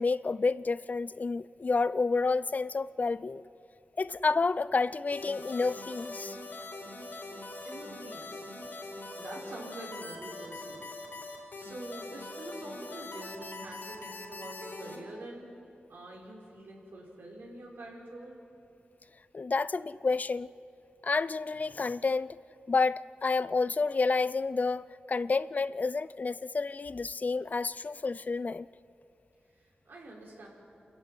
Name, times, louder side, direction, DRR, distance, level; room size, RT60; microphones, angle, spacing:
voice 1, 0.0-3.4 4.0-6.4 19.3-20.5 21.0-22.4 22.7-28.7, left 4 dB, 45° left, 0.4 m, -29 dB
sound 1, 5.1-15.0, left 2 dB, 70° left, 4.7 m, -42 dB
voice 2, 7.6-8.5 8.8-10.8 11.3-15.5 15.9-18.4 29.5-30.5, right 1 dB, 90° right, 5.3 m, -46 dB
29.0 x 13.5 x 9.2 m
wide cardioid pair, 80°, 4 cm